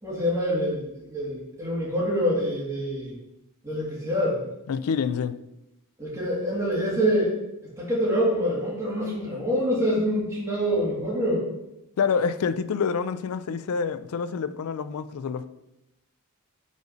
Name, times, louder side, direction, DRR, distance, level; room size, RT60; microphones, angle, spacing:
voice 1, 0.0-3.1 3.6-4.4 6.0-7.3 7.8-11.4, equal, 15° right, 1.9 m, -26 dB
voice 2, 4.7-5.4 12.0-15.5, left 6 dB, 70° left, 0.4 m, -27 dB
5.1 x 4.0 x 5.2 m
head